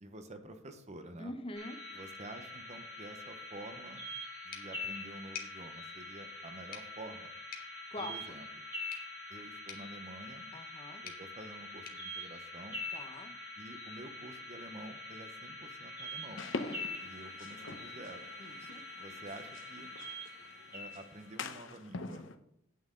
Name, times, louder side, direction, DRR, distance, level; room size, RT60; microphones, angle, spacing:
voice 1, 0.0-1.3 1.9-4.0 4.4-7.3 8.0-8.4 9.3-10.5 11.0-12.8 13.6-16.5 17.0-18.3 19.0-19.9 20.7-22.3, right 1 dB, 35° right, 8 dB, 1.0 m, -49 dB
voice 2, 1.2-1.8 7.9-8.1 10.5-11.0 12.9-13.3 16.6-16.8 18.4-18.8, left 2 dB, 30° left, 6 dB, 1.0 m, -44 dB
sound 1, 1.5-21.4, left 1 dB, 10° right, 4.6 m, -45 dB
sound 2, 4.5-13.2, left 8 dB, 50° left, 1.6 m, -53 dB
sound 3, 16.4-22.4, left 3 dB, 70° left, 0.9 m, -45 dB
9.4 x 8.8 x 3.8 m, 0.73 s
head